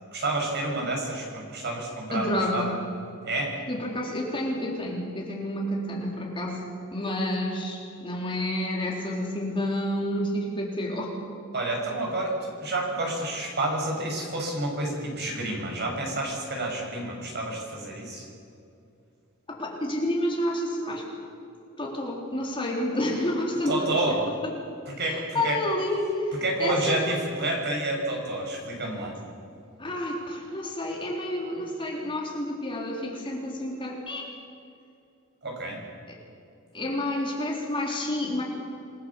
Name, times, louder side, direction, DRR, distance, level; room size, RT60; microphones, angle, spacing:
voice 1, 0.1-2.7 3.2-3.5 11.5-18.3 23.7-24.2 24.9-25.6 26.4-29.2 35.4-35.8, right 2 dB, 50° right, 0 dB, 6.6 m, -29 dB
voice 2, 2.1-2.7 3.7-6.6 6.9-11.2 19.5-21.0 21.8-24.2 25.0-27.0 29.8-34.3 36.1-36.2 36.7-38.4, left 1 dB, 25° left, -2 dB, 3.8 m, -29 dB
28.0 x 20.5 x 7.3 m, 2.5 s
head